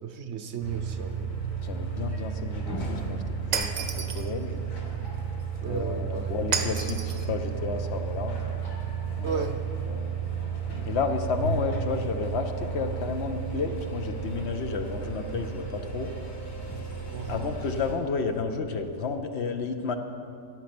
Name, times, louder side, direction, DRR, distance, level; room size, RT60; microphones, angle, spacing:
voice 1, 0.0-1.3 5.6-6.4 9.2-9.6 17.1-17.5, right 6 dB, 60° right, 8 dB, 0.9 m, -34 dB
sound 1, 0.6-17.9, right 6 dB, 75° left, 2.2 m, -33 dB
voice 2, 1.6-3.2 3.5-4.6 5.7-8.4 9.2-9.5 9.9-10.2 10.8-16.1 17.3-20.0, left 4 dB, 60° left, 7 dB, 0.9 m, -31 dB
Shatter, 3.5-4.3 6.5-7.2, right 5 dB, 80° right, 1.4 m, -30 dB
15.0 x 8.5 x 6.0 m, 2.6 s
omnidirectional pair, 1.4 m